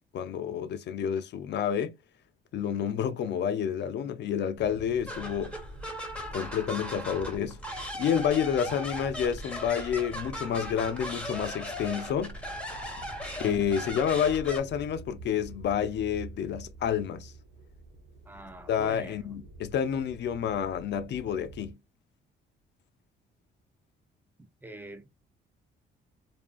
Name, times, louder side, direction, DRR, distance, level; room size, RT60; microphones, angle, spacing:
voice 1, 0.1-1.9 2.5-5.6 6.3-7.6 7.9-12.4 13.0-13.1 13.4-17.3 18.7-21.8, left 8 dB, 60° left, 0.4 m, -29 dB
sound 1, 4.5-21.7, right 2 dB, 70° right, 1.1 m, -48 dB
sound 2, 5.1-14.6, equal, 5° left, 0.9 m, -38 dB
voice 2, 18.3-19.2 24.4-25.1, right 1 dB, 10° right, 0.5 m, -44 dB
2.7 x 2.4 x 2.3 m
cardioid pair, 90°, 20 cm